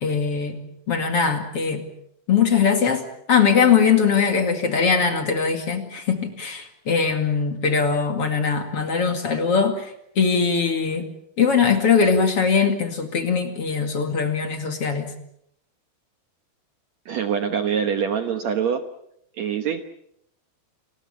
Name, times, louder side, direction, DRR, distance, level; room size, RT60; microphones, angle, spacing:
voice 1, 0.0-0.6 0.9-1.8 2.3-11.1 11.4-15.1, left 6 dB, 45° left, 5 dB, 2.8 m, -21 dB
voice 2, 17.1-18.8 19.4-19.9, right 7 dB, 60° right, 7 dB, 2.0 m, -24 dB
29.0 x 21.0 x 7.0 m, 0.74 s
omnidirectional pair, 4.3 m